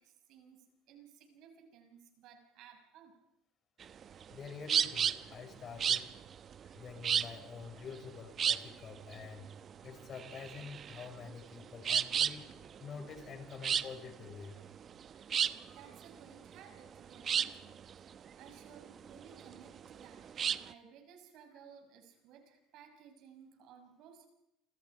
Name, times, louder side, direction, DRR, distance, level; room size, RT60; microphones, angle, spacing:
voice 1, 0.0-3.2 15.7-24.3, right 7 dB, 65° right, 5 dB, 6.3 m, -58 dB
sound 1, 3.8-20.7, right 8 dB, 45° right, 1.0 m, -34 dB
voice 2, 4.3-6.1 6.6-9.5 9.8-12.4 12.8-14.6, left 6 dB, 45° left, 5 dB, 6.0 m, -47 dB
28.5 x 26.5 x 4.9 m, 0.85 s
hypercardioid pair, 75°, 0 cm